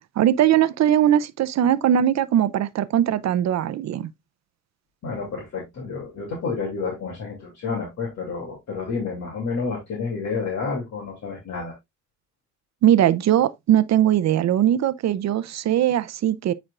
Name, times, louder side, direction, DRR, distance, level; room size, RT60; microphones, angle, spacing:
voice 1, 0.2-4.1 12.8-16.5, right 11 dB, 65° right, 0.6 m, -20 dB
voice 2, 5.0-11.7, left 4 dB, 65° left, 2.7 m, -30 dB
8.8 x 4.5 x 2.4 m
cardioid pair, 90°, 30 cm